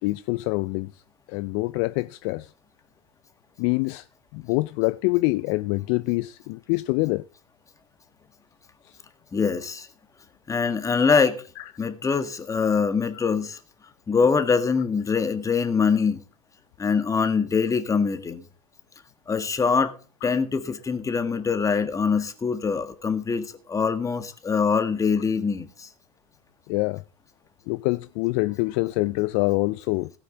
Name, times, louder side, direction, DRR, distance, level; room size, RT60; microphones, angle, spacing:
voice 1, 0.0-1.0 1.3-2.5 3.6-4.1 4.3-7.2 8.8-9.0 11.6-11.7 13.1-13.2 20.2-20.3 26.7-27.0 27.7-30.1, left 23 dB, 50° left, 0.4 m, -25 dB
voice 2, 9.3-9.9 10.5-11.4 11.8-13.6 14.1-16.2 16.8-18.4 19.3-19.9 20.2-25.9, left 5 dB, 15° left, 1.5 m, -23 dB
16.5 x 9.0 x 3.8 m
hypercardioid pair, 90°, 18 cm